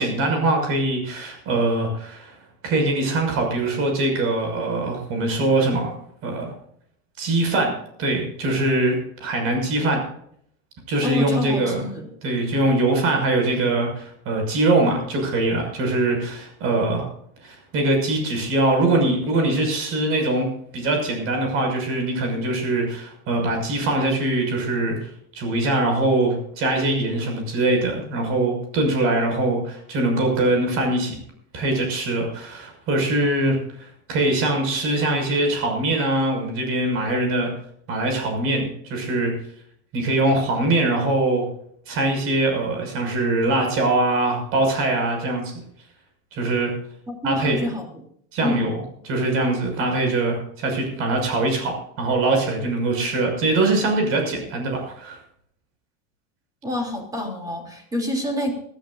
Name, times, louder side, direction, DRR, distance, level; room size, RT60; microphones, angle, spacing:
voice 1, 0.0-2.4 2.6-6.0 6.2-6.5 7.2-10.0 10.9-11.8 12.2-17.1 17.4-20.5 20.7-25.1 25.3-31.2 31.5-37.5 37.9-39.3 39.9-41.5 41.9-45.5 46.3-46.7 47.2-47.7 48.3-55.2, right 2 dB, 45° right, 3 dB, 6.1 m, -22 dB
voice 2, 11.0-12.0 47.1-47.8 48.4-48.7 56.6-58.5, left 1 dB, 10° right, 2 dB, 3.2 m, -27 dB
21.5 x 13.0 x 2.6 m, 0.67 s
cardioid pair, 160°, 31 cm